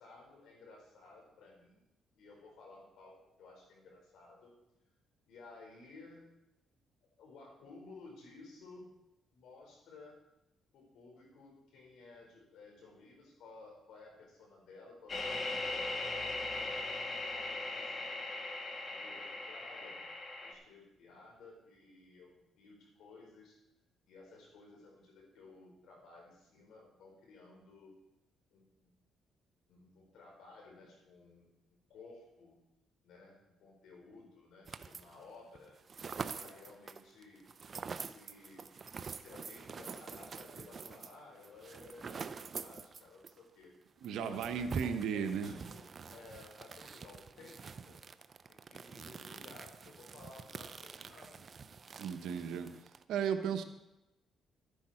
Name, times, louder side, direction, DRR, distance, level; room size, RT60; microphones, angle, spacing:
voice 1, 0.0-1.8 2.1-4.5 5.3-6.3 7.2-8.9 9.3-10.2 10.7-17.0 17.2-18.2 18.8-20.1 20.4-23.6 24.1-28.0 28.5-28.9 29.7-32.6 33.0-35.8 36.1-37.5 38.0-38.6 39.1-43.7 44.2-48.0 48.5-51.4, left 3 dB, 80° left, -1 dB, 4.9 m, -56 dB
sound 1, 15.1-20.5, left 2 dB, 40° left, 2.0 m, -39 dB
sound 2, 34.7-35.3 35.6-43.4 43.6-43.7 44.0-53.0, right 5 dB, 40° right, 0.6 m, -46 dB
voice 2, 44.0-45.6 52.0-52.7 53.1-53.6, right 7 dB, 85° right, 8 dB, 1.0 m, -35 dB
13.0 x 10.0 x 4.4 m, 0.89 s
cardioid pair, 90°, 0 cm